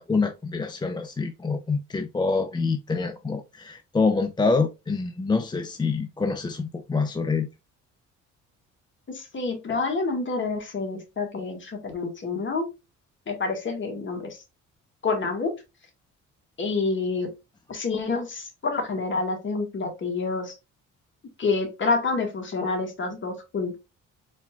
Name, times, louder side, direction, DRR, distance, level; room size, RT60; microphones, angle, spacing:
voice 1, 0.0-7.5, left 4 dB, 15° left, 0.5 m, -26 dB
voice 2, 9.1-12.7 13.3-14.4 15.0-15.5 16.6-17.3 17.7-20.5 21.4-23.8, left 3 dB, 40° left, 1.9 m, -28 dB
4.2 x 4.1 x 2.3 m
cardioid pair, 90°, 30 cm